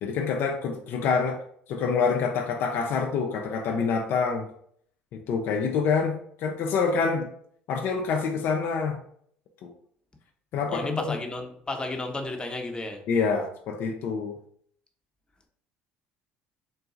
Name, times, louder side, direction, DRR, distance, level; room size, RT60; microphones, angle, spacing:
voice 1, 0.0-1.4 1.7-4.5 5.1-7.3 7.7-9.0 9.6-9.7 10.5-11.1 13.1-14.4, left 5 dB, 60° left, 2 dB, 0.5 m, -26 dB
voice 2, 10.7-13.0, left 2 dB, 20° left, 3 dB, 0.8 m, -32 dB
3.9 x 2.3 x 3.9 m, 0.64 s
hypercardioid pair, 65°, 5 cm